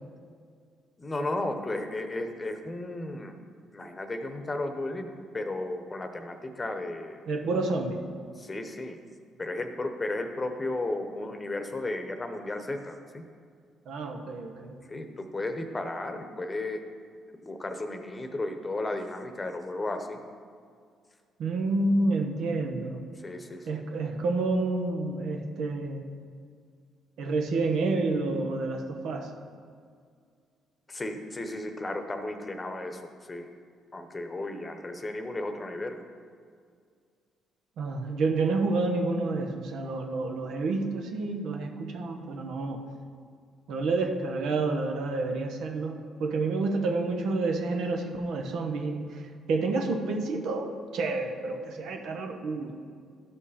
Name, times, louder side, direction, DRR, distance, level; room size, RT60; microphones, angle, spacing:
voice 1, 1.0-3.4 3.7-5.1 5.3-7.2 8.4-9.0 9.4-13.3 14.8-16.8 17.4-20.2 23.2-23.8 30.9-33.5 33.9-36.0, left 2 dB, 25° left, 6 dB, 0.9 m, -34 dB
voice 2, 7.3-8.0 13.9-14.8 21.4-23.0 23.7-26.1 27.2-29.3 37.8-42.8 43.7-52.7, right 3 dB, 75° right, 3 dB, 1.0 m, -29 dB
12.5 x 5.3 x 4.2 m, 2.1 s
supercardioid pair, 70°, 0 cm